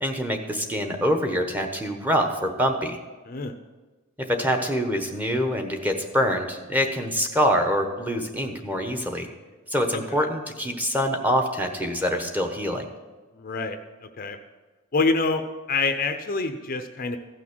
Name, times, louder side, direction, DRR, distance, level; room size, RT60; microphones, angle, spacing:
voice 1, 0.0-3.0 4.2-9.3 9.7-12.8, equal, 10° right, 4 dB, 1.0 m, -25 dB
voice 2, 13.4-14.4 14.9-17.2, left 3 dB, 40° left, 7 dB, 0.6 m, -26 dB
15.0 x 6.1 x 6.1 m, 1.3 s
head